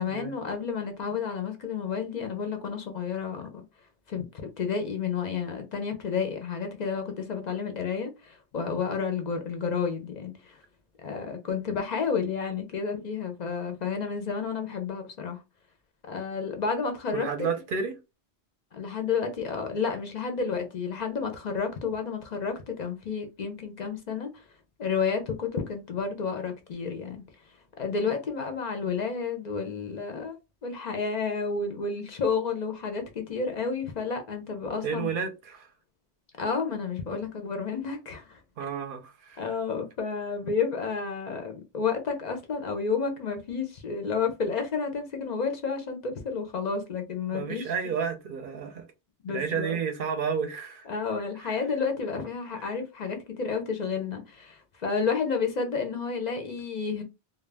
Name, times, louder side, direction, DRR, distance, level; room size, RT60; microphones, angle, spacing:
voice 1, 0.0-3.6 4.1-10.6 11.0-15.4 16.1-17.3 18.7-24.4 24.8-27.2 27.8-30.3 30.6-35.1 36.4-38.7 39.4-47.7 49.2-49.8 50.9-57.0, left 5 dB, 55° left, 0.5 m, -31 dB
voice 2, 17.1-18.0 34.8-35.7 38.6-39.4 47.3-48.9 49.3-50.9 51.4-51.6 52.6-52.7, right 6 dB, 60° right, 0.7 m, -31 dB
2.3 x 2.1 x 3.3 m
omnidirectional pair, 1.1 m